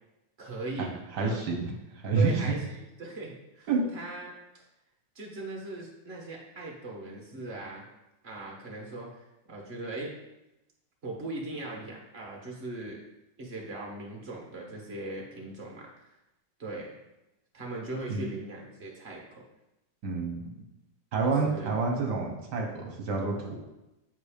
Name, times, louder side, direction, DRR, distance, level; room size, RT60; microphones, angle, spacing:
voice 1, 0.4-0.9 1.2-1.3 2.1-4.6 5.1-7.8 8.2-10.1 11.0-13.0 13.4-16.1 16.6-16.9 17.5-19.2 21.4-21.7, right 2 dB, 40° right, -1 dB, 1.0 m, -39 dB
voice 2, 1.1-1.7 2.0-2.5 3.7-3.8 18.1-18.2 20.0-20.4 21.1-23.6, right 4 dB, 60° right, 0 dB, 1.4 m, -28 dB
7.9 x 2.7 x 4.9 m, 0.95 s
omnidirectional pair, 2.3 m